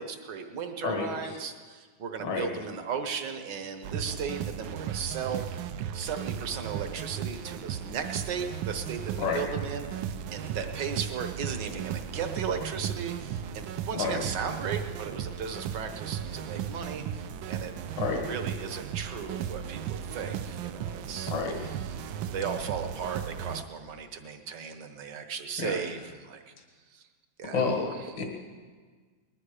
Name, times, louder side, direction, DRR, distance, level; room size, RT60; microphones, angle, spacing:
voice 1, 0.0-10.0 10.3-17.7 18.3-21.3 21.7-22.0 22.2-26.5 26.9-27.1 27.4-27.6 27.9-28.2, right 6 dB, 65° right, 7 dB, 1.7 m, -36 dB
sound 1, 3.8-23.6, right 9 dB, 85° right, 1.4 m, -36 dB
voice 2, 27.5-27.9 28.2-28.3, left 4 dB, 70° left, 3 dB, 2.2 m, -29 dB
20.0 x 11.5 x 4.9 m, 1.5 s
omnidirectional pair, 2.1 m